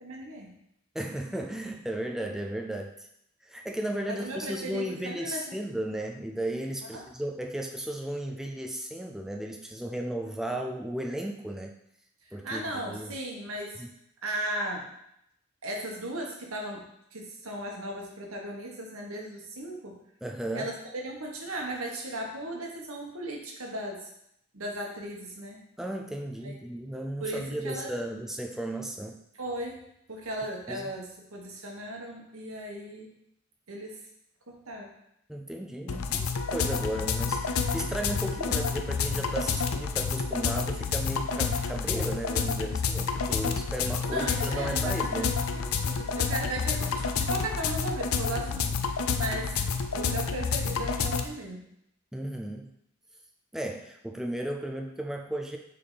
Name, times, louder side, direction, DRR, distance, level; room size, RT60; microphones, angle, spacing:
voice 1, 0.0-0.5 4.1-5.6 6.9-7.1 12.4-13.8 14.2-14.9 15.6-20.0 20.5-24.1 24.5-25.6 26.4-26.5 27.2-27.9 29.4-29.8 30.1-33.1 33.7-34.0 34.5-34.9 35.9-36.0 44.1-45.1 45.5-49.5 49.9-51.6, right 1 dB, 85° right, 0 dB, 1.3 m, -36 dB
voice 2, 0.9-3.1 3.4-11.7 12.3-13.2 13.8-13.9 20.2-20.7 25.8-29.2 30.7-30.9 35.3-45.3 52.1-52.7 53.5-55.6, right 1 dB, ahead, 2 dB, 0.3 m, -35 dB
sound 1, 35.9-51.2, left 5 dB, 85° left, 0.5 m, -29 dB
6.7 x 3.5 x 4.0 m, 0.76 s
head